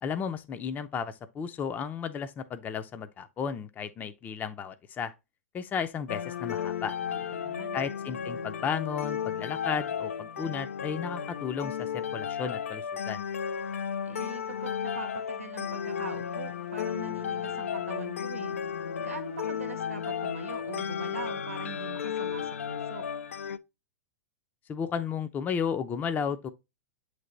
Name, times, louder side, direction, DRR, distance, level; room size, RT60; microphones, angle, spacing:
voice 1, 0.0-5.1 5.5-6.9 7.7-13.2 24.7-26.5, left 7 dB, 25° left, 0.5 m, -33 dB
sound 1, 6.1-23.6, left 8 dB, 75° left, 0.4 m, -34 dB
voice 2, 7.1-7.8 14.0-18.6 19.0-23.1, right 4 dB, 85° right, 0.9 m, -42 dB
7.9 x 3.3 x 3.9 m
hypercardioid pair, 100°, 7 cm